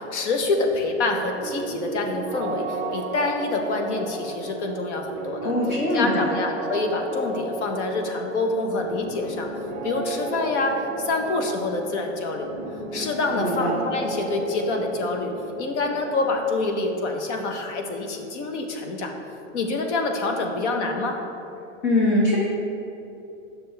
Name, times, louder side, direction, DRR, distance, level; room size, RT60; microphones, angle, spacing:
voice 1, 0.0-5.5 5.9-9.5 9.8-12.5 12.9-15.3 15.6-19.1 19.5-21.2, left 3 dB, 65° left, 3 dB, 1.0 m, -26 dB
sound 1, 1.3-19.0, right 2 dB, 15° right, 0.5 m, -34 dB
voice 2, 5.4-6.3 13.3-13.7 21.8-22.4, left 1 dB, 40° left, -4 dB, 1.1 m, -22 dB
8.8 x 6.0 x 3.4 m, 2.8 s
supercardioid pair, 165°, 38 cm